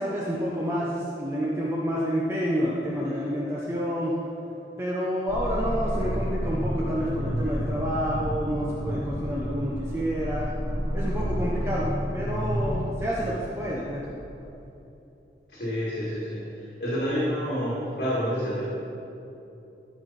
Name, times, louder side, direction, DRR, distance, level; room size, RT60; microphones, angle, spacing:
voice 1, 0.0-4.1 4.8-10.5 10.9-14.1, equal, 15° right, -6 dB, 0.8 m, -29 dB
sound 1, 5.3-14.4, equal, 20° left, 1.7 m, -30 dB
voice 2, 15.5-16.5 16.8-18.6, equal, 60° left, -8 dB, 2.0 m, -28 dB
13.5 x 5.2 x 4.2 m, 2.9 s
head